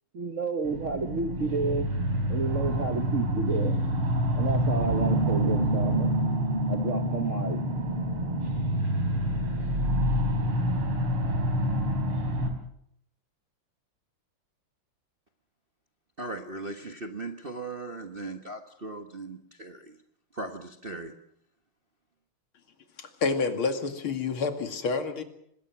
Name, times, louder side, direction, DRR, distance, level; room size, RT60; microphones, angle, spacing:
voice 1, 0.1-1.9 2.3-3.8 4.3-6.1 6.7-7.6, right 4 dB, 45° right, 1.1 m, -31 dB
sound 1, 0.6-12.5, equal, 85° right, 4.6 m, -27 dB
voice 2, 16.2-19.9 20.3-21.1, right 2 dB, 30° right, 1.3 m, -38 dB
voice 3, 23.0-25.2, left 4 dB, 75° left, 3.1 m, -28 dB
26.0 x 20.5 x 6.1 m
omnidirectional pair, 2.3 m